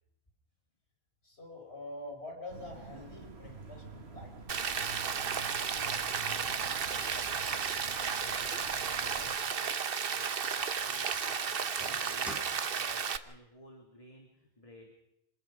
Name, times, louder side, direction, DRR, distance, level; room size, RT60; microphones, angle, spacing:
voice 1, 1.2-4.3, left 1 dB, 85° left, 1 dB, 5.9 m, -45 dB
sound 1, 2.5-9.4, right 3 dB, 80° right, 2.0 m, -48 dB
Rain, 4.5-13.2, right 6 dB, 60° right, 1.1 m, -33 dB
voice 2, 5.0-14.9, equal, 35° left, 1 dB, 2.6 m, -56 dB
sound 2, 6.8-12.7, equal, ahead, 3.3 m, -50 dB
26.5 x 20.0 x 5.3 m, 0.84 s
omnidirectional pair, 1.1 m